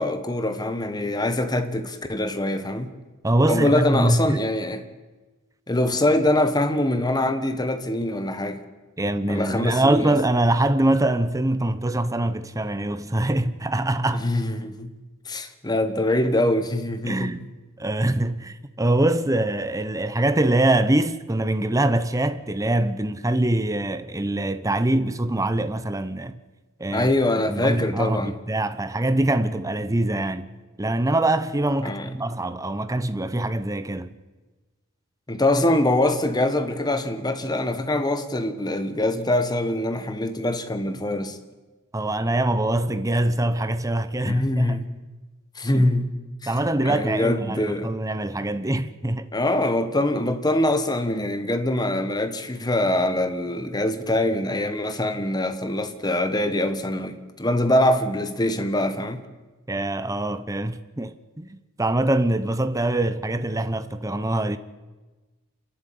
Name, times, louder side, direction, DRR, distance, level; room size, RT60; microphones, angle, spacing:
voice 1, 0.0-2.9 3.5-4.8 5.7-8.6 9.3-10.1 14.1-14.9 15.2-17.3 26.9-28.3 31.8-32.1 35.3-41.4 44.3-44.9 45.5-46.1 46.4-46.5 46.8-47.9 49.3-59.2, left 1 dB, 20° left, 1.3 m, -23 dB
voice 2, 3.2-4.4 9.0-14.3 17.1-17.4 17.8-26.4 26.8-27.1 27.5-30.5 30.8-34.1 41.9-44.8 45.7-45.8 46.5-49.3 59.7-64.6, right 1 dB, 15° right, 0.8 m, -24 dB
28.0 x 11.0 x 8.6 m
head